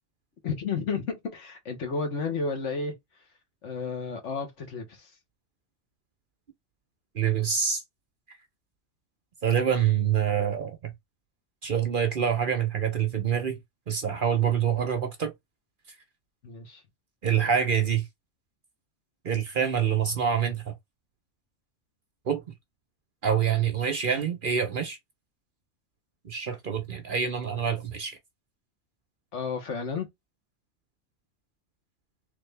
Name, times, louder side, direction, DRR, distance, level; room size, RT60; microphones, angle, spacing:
voice 1, 0.4-2.9 3.6-5.1 16.4-16.8 29.3-30.1, left 4 dB, 70° left, 1.5 m, -32 dB
voice 2, 7.1-7.8 9.4-10.9 11.6-13.6 13.9-15.3 17.2-18.0 19.2-20.7 22.3-22.4 23.2-25.0 26.2-28.2, right 8 dB, 50° right, 0.8 m, -26 dB
3.7 x 2.8 x 3.3 m
omnidirectional pair, 1.3 m